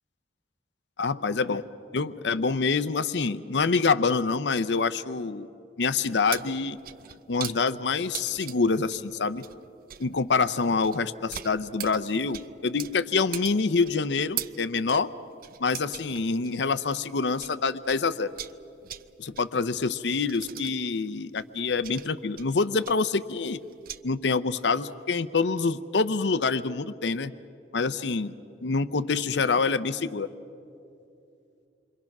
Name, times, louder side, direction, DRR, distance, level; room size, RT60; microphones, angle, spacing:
voice 1, 1.0-1.6 1.9-5.5 5.8-6.8 7.3-9.4 10.0-15.1 15.6-18.3 19.2-23.6 24.0-27.3 27.7-28.3 28.6-30.3, left 4 dB, 85° left, 14 dB, 0.7 m, -26 dB
sound 1, 6.0-17.6 17.8-24.0, right 11 dB, 55° right, 0.5 m, -41 dB
28.0 x 23.5 x 6.0 m, 2.7 s
head